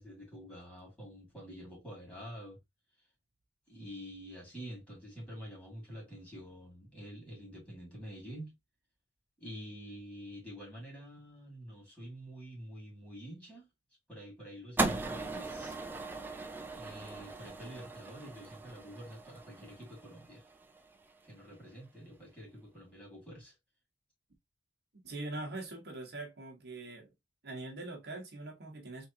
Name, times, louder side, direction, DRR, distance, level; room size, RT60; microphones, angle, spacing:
voice 1, 0.0-2.6 3.7-8.5 9.4-13.7 14.1-15.8 16.7-20.5 21.2-23.5, equal, 5° left, 2.3 m, -48 dB
sound 1, 14.8-21.1, right 3 dB, 10° right, 0.4 m, -38 dB
voice 2, 25.0-27.1 27.4-29.1, right 2 dB, 55° right, 1.0 m, -42 dB
3.6 x 3.1 x 2.7 m
head